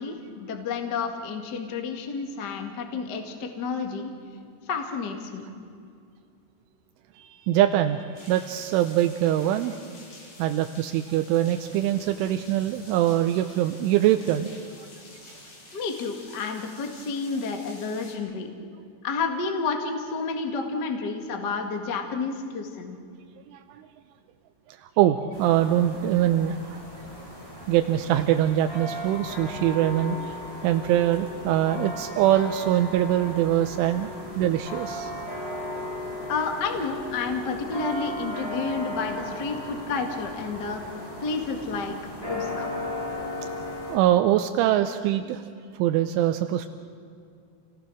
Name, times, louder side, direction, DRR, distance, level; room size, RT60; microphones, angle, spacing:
voice 1, 0.0-4.1 4.7-5.5 15.7-18.5 19.0-23.0 36.3-40.8 41.2-42.7, left 4 dB, 80° left, 4 dB, 0.9 m, -30 dB
voice 2, 7.2-9.8 10.4-14.5 23.5-23.8 24.8-26.8 27.7-34.1 34.4-35.1 43.9-45.5 45.8-46.7, right 12 dB, 85° right, 8 dB, 3.1 m, -23 dB
sound 1, 8.2-18.2, left 2 dB, 50° left, 5.9 m, -49 dB
sound 2, 25.3-44.0, left 1 dB, 10° left, 5.4 m, -36 dB
29.0 x 18.5 x 6.3 m, 2.4 s
omnidirectional pair, 5.6 m